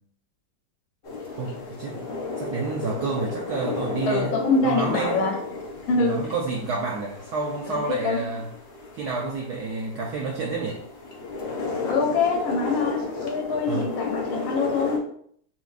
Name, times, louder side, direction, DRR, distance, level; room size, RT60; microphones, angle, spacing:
sound 1, 1.0-15.0, left 3 dB, 65° left, 0.6 m, -34 dB
voice 1, 1.4-2.0 2.4-4.3 4.6-5.2 5.9-8.5 8.9-10.8 13.7-13.9, right 3 dB, 70° right, -2 dB, 1.0 m, -29 dB
voice 2, 4.1-5.4 5.9-6.2 7.7-8.2 11.8-15.0, left 4 dB, 90° left, -1 dB, 1.8 m, -24 dB
5.7 x 3.0 x 2.3 m, 0.64 s
omnidirectional pair, 2.2 m